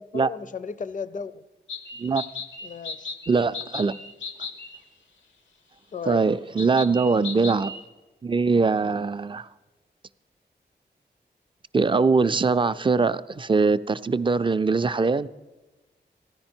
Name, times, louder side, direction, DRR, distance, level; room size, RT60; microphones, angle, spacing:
voice 1, 0.0-1.4 2.6-3.1 5.9-6.3, left 5 dB, 45° left, 16 dB, 0.5 m, -35 dB
sound 1, 1.7-4.8 6.6-7.8, left 4 dB, 90° left, 0.9 m, -37 dB
voice 2, 3.3-4.0 6.1-7.7 8.2-9.5 11.7-15.3, right 4 dB, 25° right, 13 dB, 0.3 m, -22 dB
15.0 x 10.0 x 4.4 m, 1.2 s
wide cardioid pair, 75°, 19 cm